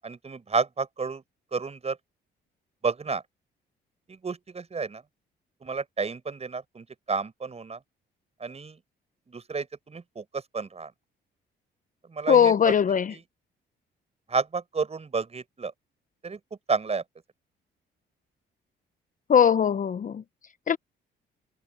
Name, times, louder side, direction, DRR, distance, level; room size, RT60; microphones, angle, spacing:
voice 1, 0.0-1.2 1.5-2.0 2.8-3.2 4.1-5.0 5.6-7.8 8.4-8.8 9.3-10.9 12.1-12.7 13.1-13.2 14.3-15.7 16.2-16.4 16.7-17.0, right 4 dB, 30° right, 5.4 m, -31 dB
voice 2, 12.3-13.1 19.3-20.2 20.7-20.8, left 8 dB, 40° left, 0.7 m, -20 dB
cardioid pair, 90°, 20 cm